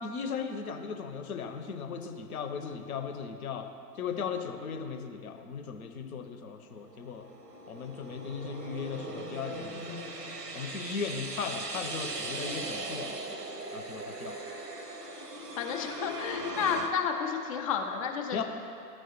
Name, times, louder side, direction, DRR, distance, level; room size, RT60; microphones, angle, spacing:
voice 1, 0.0-7.3 7.7-10.1 10.5-13.1 13.7-14.4 18.3-18.4, left 6 dB, 65° left, 6 dB, 0.8 m, -37 dB
sound 1, 6.8-16.9, right 1 dB, 85° right, 0.8 m, -39 dB
voice 2, 15.5-18.4, left 6 dB, 25° left, 3 dB, 0.4 m, -31 dB
13.0 x 4.6 x 3.0 m, 2.5 s
figure-of-eight pair, 100°, 47 cm